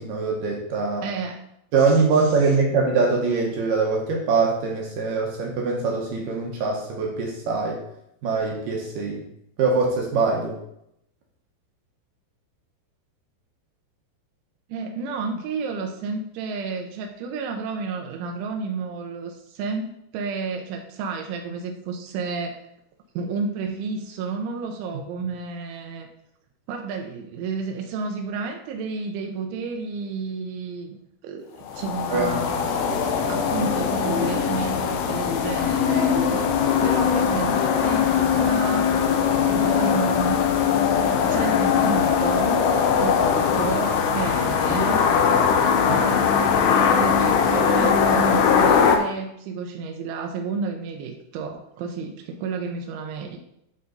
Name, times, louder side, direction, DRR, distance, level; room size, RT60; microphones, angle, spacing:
voice 1, 0.0-1.1 1.7-7.8 8.2-9.2 9.6-10.6 32.1-32.3 32.8-33.0 45.8-46.2, right 4 dB, 75° right, -1 dB, 2.0 m, -23 dB
voice 2, 1.0-1.4 14.7-22.6 23.1-26.1 26.7-32.7 33.3-36.4 36.8-39.0 39.5-40.4 41.3-42.6 43.0-45.1 47.0-53.4, right 4 dB, 90° right, 3 dB, 3.2 m, -31 dB
sound 1, 31.7-49.0, left 7 dB, 80° left, 2.7 m, -21 dB
11.0 x 4.0 x 3.9 m, 0.77 s
omnidirectional pair, 5.3 m